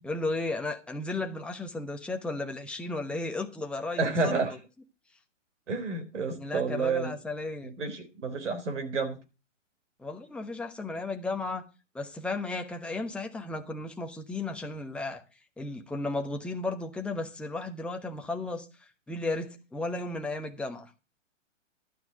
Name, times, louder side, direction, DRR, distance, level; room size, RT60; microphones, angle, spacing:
voice 1, 0.0-4.6 6.4-7.7 10.0-11.7 11.9-15.2 15.6-20.9, left 2 dB, 5° left, 1.0 m, -34 dB
voice 2, 4.0-4.5 5.7-7.1 7.6-9.2, right 4 dB, 65° right, 3.8 m, -30 dB
12.0 x 5.8 x 7.8 m
hypercardioid pair, 135°, 38 cm